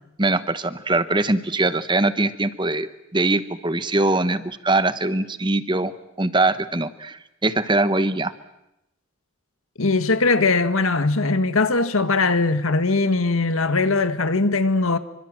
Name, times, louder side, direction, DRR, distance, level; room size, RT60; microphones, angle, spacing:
voice 1, 0.2-5.9 6.2-8.3, right 2 dB, 20° right, 1.1 m, -22 dB
voice 2, 9.8-15.0, left 3 dB, 85° left, 1.6 m, -20 dB
27.0 x 24.5 x 7.6 m
head